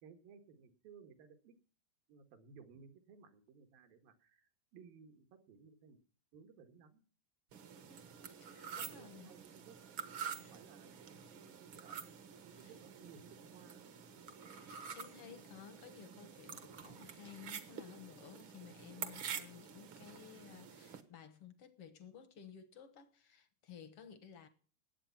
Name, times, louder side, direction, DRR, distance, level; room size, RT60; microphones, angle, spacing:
voice 1, 0.0-1.5 2.1-6.0 6.3-7.0 8.7-9.8 10.2-13.9, right 6 dB, 80° right, 3.4 m, -59 dB
sound 1, 7.5-21.0, right 7 dB, 60° right, 1.3 m, -48 dB
voice 2, 7.9-9.4 10.3-10.6 12.5-12.8 14.5-24.5, left 8 dB, 60° left, 1.5 m, -56 dB
19.0 x 8.4 x 5.8 m
omnidirectional pair, 4.0 m